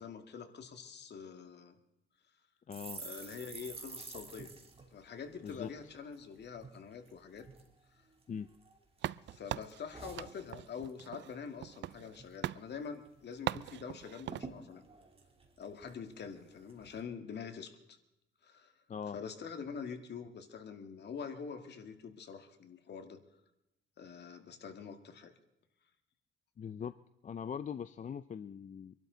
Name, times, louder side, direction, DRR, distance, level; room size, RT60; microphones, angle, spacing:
voice 1, 0.0-1.8 3.0-4.5 4.9-7.5 7.9-8.0 9.3-14.8 15.6-18.0 18.4-18.7 19.1-23.2 24.0-25.3, left 6 dB, 60° left, 6 dB, 2.1 m, -45 dB
voice 2, 2.7-3.0 5.4-5.9 8.3-8.5 18.9-19.2 26.6-26.9 27.2-28.9, left 7 dB, 40° left, 12 dB, 0.6 m, -41 dB
sound 1, 2.7-6.2 6.6-6.8 7.0-7.7 8.2-9.0 9.3-11.0 11.3-11.5 11.7-12.3 12.7-12.8 13.0-13.7 14.0-14.1 14.3-16.2 16.7-17.0, right 4 dB, 30° right, 3.1 m, -50 dB
sound 2, 9.0-12.2 12.4-12.6 13.5-14.5, right 13 dB, 65° right, 0.4 m, -40 dB
25.5 x 12.0 x 4.0 m, 0.89 s
cardioid pair, 90°, 20 cm